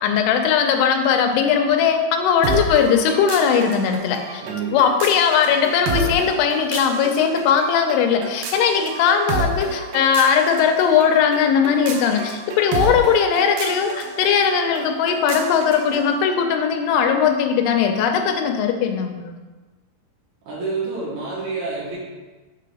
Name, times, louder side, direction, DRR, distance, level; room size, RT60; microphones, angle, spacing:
voice 1, 0.0-4.4 4.7-19.4, left 7 dB, 90° left, 5 dB, 2.7 m, -19 dB
sound 1, 2.4-16.1, right 2 dB, 80° right, 2.6 m, -30 dB
voice 2, 4.4-4.8 20.5-22.0, right 4 dB, 60° right, -7 dB, 2.5 m, -28 dB
6.3 x 3.9 x 4.8 m, 1.2 s
omnidirectional pair, 4.6 m